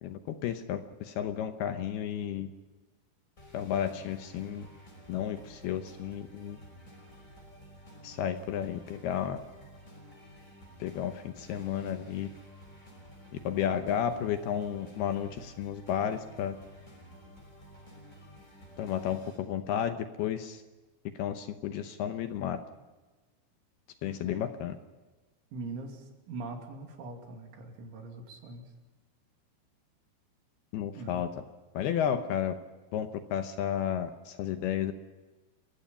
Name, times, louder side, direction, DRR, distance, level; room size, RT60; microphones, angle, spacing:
voice 1, 0.0-2.5 3.5-4.7 5.1-6.6 8.0-9.4 10.8-12.3 13.4-16.6 18.8-20.6 21.1-22.6 24.0-24.8 30.7-31.3 31.7-32.6 32.9-34.9, left 9 dB, 75° left, 8 dB, 2.5 m, -32 dB
sound 1, 3.4-19.4, equal, 15° left, 5.3 m, -52 dB
voice 2, 25.5-28.7 31.0-31.2, right 3 dB, 85° right, 3 dB, 5.1 m, -42 dB
29.0 x 16.0 x 5.6 m, 1.2 s
omnidirectional pair, 5.3 m